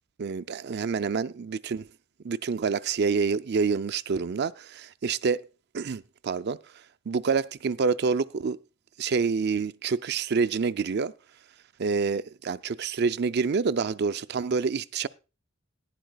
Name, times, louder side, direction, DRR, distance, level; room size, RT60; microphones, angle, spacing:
voice 1, 0.2-1.9 2.2-5.5 5.7-6.6 7.1-8.6 9.0-11.1 11.8-15.1, right 5 dB, 55° right, 0.5 m, -27 dB
18.0 x 10.5 x 2.3 m
head